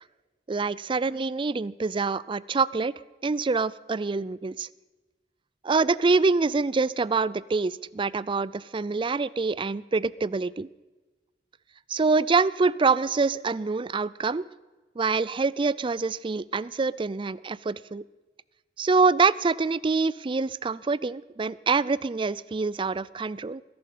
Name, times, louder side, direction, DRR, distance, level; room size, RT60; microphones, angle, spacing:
voice 1, 0.5-2.9 3.2-4.7 5.6-10.7 11.9-14.5 15.0-18.0 18.8-23.6, right 4 dB, 30° right, 20 dB, 0.4 m, -25 dB
20.5 x 11.5 x 5.5 m, 1.2 s
head